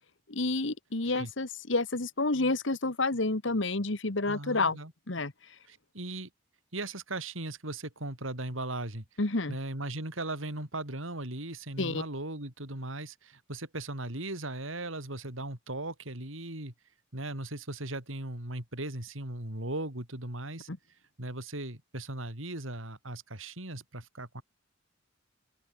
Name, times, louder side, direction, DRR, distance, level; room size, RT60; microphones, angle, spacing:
voice 1, 0.3-4.8 5.1-5.3 9.2-9.5 11.8-12.0 20.7-20.8, left 2 dB, 65° left, 1.7 m, -29 dB
voice 2, 4.2-4.9 5.7-6.3 6.7-9.0 9.5-16.7 17.1-20.7 21.2-24.4, right 2 dB, 80° right, 4.9 m, -38 dB
open air
head